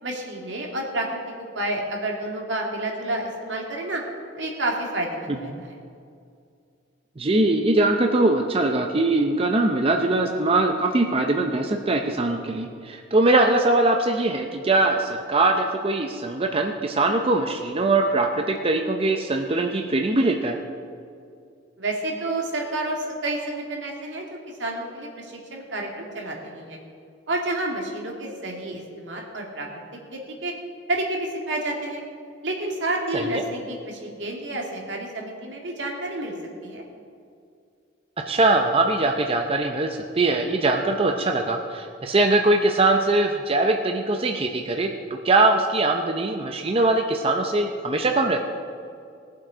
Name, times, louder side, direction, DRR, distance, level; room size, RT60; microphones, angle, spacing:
voice 1, 0.0-1.1 1.5-4.0 4.4-5.7 21.8-24.2 24.6-26.8 27.3-29.7 30.1-30.5 30.9-32.0 32.4-36.3 36.6-36.8, right 1 dB, 75° right, 0 dB, 2.2 m, -29 dB
voice 2, 7.2-20.6 33.1-33.4 38.3-48.4, right 2 dB, 30° right, 3 dB, 0.6 m, -22 dB
19.0 x 7.5 x 5.0 m, 2.4 s
head